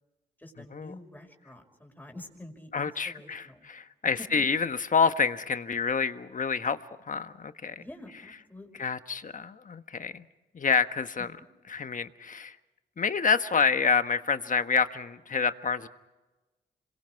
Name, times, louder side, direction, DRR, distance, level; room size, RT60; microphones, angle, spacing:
voice 1, 0.4-3.7 4.0-4.1 7.8-8.9, left 1 dB, 10° left, 3 dB, 5.7 m, -48 dB
voice 2, 2.7-6.8 7.0-7.8 8.8-10.2 10.5-11.3 11.7-12.5 13.0-15.9, left 5 dB, 45° left, 10 dB, 1.3 m, -28 dB
27.5 x 23.0 x 4.8 m, 1.1 s
cardioid pair, 60°, 18 cm